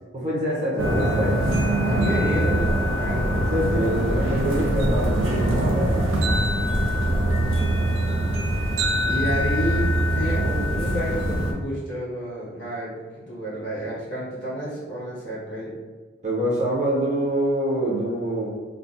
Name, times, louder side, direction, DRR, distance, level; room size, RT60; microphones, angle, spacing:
voice 1, 0.1-1.4 3.5-6.5 16.2-18.5, right 1 dB, 35° right, -6 dB, 0.8 m, -25 dB
sound 1, 0.8-11.5, right 1 dB, 85° right, 0.6 m, -23 dB
voice 2, 1.8-3.5 9.0-12.9 13.3-15.8, equal, 60° left, -8 dB, 1.4 m, -30 dB
3.7 x 2.3 x 2.6 m, 1.4 s
head